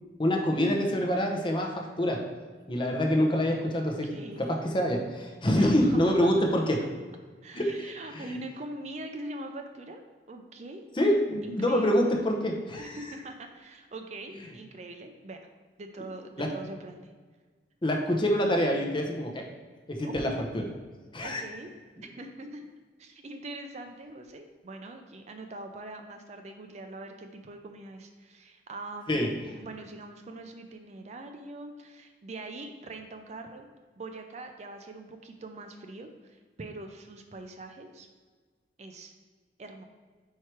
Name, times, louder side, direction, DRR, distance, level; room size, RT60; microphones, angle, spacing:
voice 1, 0.2-2.2 2.7-5.0 5.4-6.8 7.5-8.2 11.0-13.0 16.4-16.5 17.8-19.5 19.9-20.7 21.1-21.4 29.1-29.3, equal, 30° left, 1 dB, 0.7 m, -26 dB
voice 2, 4.1-4.7 5.6-6.5 7.4-10.0 10.3-10.9 11.4-12.1 12.8-15.5 15.8-17.0 20.0-20.5 21.2-21.7 22.0-22.7 23.0-33.7 34.0-38.1 38.8-39.1 39.6-39.8, right 2 dB, 40° right, 5 dB, 0.5 m, -43 dB
4.6 x 4.6 x 4.5 m, 1.5 s
head